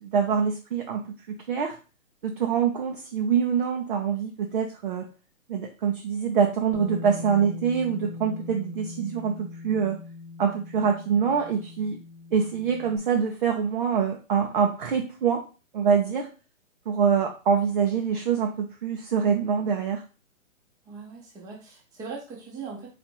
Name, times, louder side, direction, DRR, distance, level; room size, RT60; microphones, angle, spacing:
voice 1, 0.0-1.0 1.5-1.8 2.2-5.0 5.5-10.0 10.4-12.0 12.3-15.4 15.7-16.3 16.9-20.0, right 7 dB, 40° right, 2 dB, 0.6 m, -25 dB
Bass guitar, 6.7-13.0, left 4 dB, 35° left, 0.8 m, -40 dB
voice 2, 20.8-22.9, right 5 dB, 10° right, -2 dB, 0.8 m, -40 dB
4.2 x 2.5 x 4.5 m, 0.34 s
hypercardioid pair, 145°, 41 cm